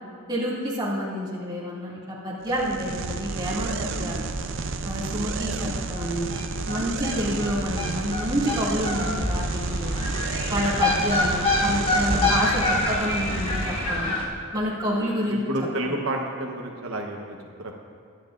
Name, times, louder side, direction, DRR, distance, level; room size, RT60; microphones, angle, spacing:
voice 1, 0.3-4.3 4.8-6.3 6.7-10.0 10.5-14.1 14.5-15.9, equal, 20° right, -7 dB, 2.3 m, -28 dB
sound 1, 2.4-13.9, right 4 dB, 60° right, 0.5 m, -31 dB
sound 2, 5.6-5.7 5.9-6.0 6.3-14.3, left 2 dB, 25° left, 1.6 m, -26 dB
voice 2, 15.3-17.7, right 1 dB, 75° right, 1 dB, 1.0 m, -31 dB
23.0 x 9.7 x 2.5 m, 2.3 s
head